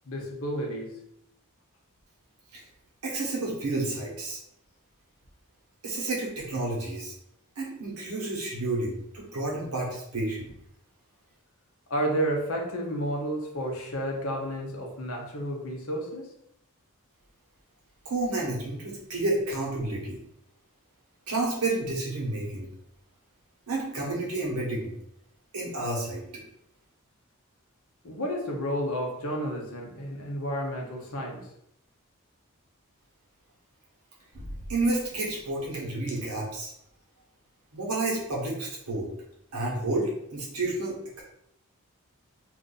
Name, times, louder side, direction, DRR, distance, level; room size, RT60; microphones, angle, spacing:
voice 1, 0.1-1.0 11.9-16.3 28.0-31.4, equal, 70° left, 0 dB, 0.7 m, -31 dB
voice 2, 3.0-4.4 5.8-7.1 7.6-10.5 18.0-20.2 21.3-22.7 23.7-24.9 25.5-26.2 34.3-36.7 37.7-39.1 39.5-41.2, right 2 dB, 85° right, -3 dB, 1.0 m, -30 dB
2.5 x 2.5 x 3.8 m, 0.76 s
head